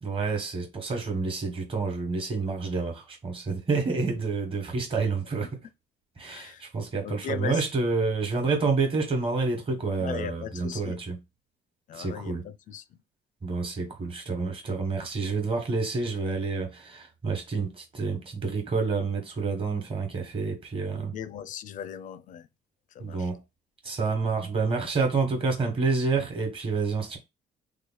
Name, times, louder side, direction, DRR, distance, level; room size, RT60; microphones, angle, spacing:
voice 1, 0.0-5.5 6.2-11.2 11.9-12.5 13.4-21.1 23.0-23.4 23.8-27.2, right 4 dB, 30° right, 1.2 m, -28 dB
voice 2, 3.9-4.2 5.4-5.5 6.3-6.7 7.0-7.6 10.0-11.0 11.9-13.0 20.9-22.5 22.9-23.3, left 9 dB, 50° left, 0.4 m, -38 dB
3.1 x 2.3 x 3.8 m
cardioid pair, 110°, 17 cm